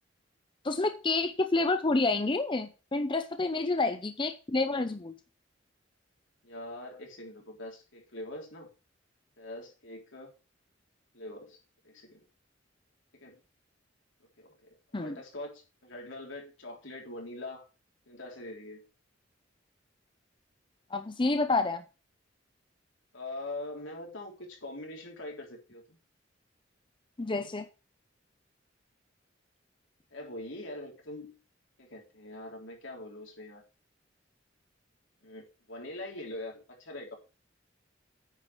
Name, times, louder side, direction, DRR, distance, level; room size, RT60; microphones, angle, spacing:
voice 1, 0.6-5.1 14.9-15.2 20.9-21.8 27.2-27.7, left 3 dB, 25° left, 8 dB, 0.7 m, -29 dB
voice 2, 6.4-8.7 9.4-10.3 11.1-11.6 11.8-12.2 13.2-13.4 14.4-14.5 14.9-17.7 18.1-18.9 23.1-26.0 30.1-31.3 31.8-33.6 35.2-37.2, left 2 dB, 85° left, 0 dB, 3.7 m, -43 dB
9.1 x 5.3 x 6.0 m, 0.32 s
head